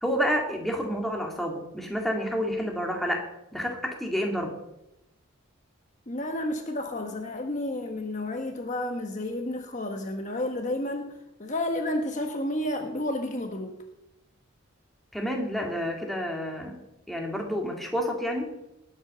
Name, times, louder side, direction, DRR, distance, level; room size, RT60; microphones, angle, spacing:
voice 1, 0.0-4.6 15.1-16.8 17.1-18.6, equal, ahead, 0 dB, 2.2 m, -29 dB
voice 2, 6.1-13.8, left 1 dB, 35° left, 4 dB, 1.2 m, -31 dB
19.0 x 8.0 x 6.8 m, 0.89 s
head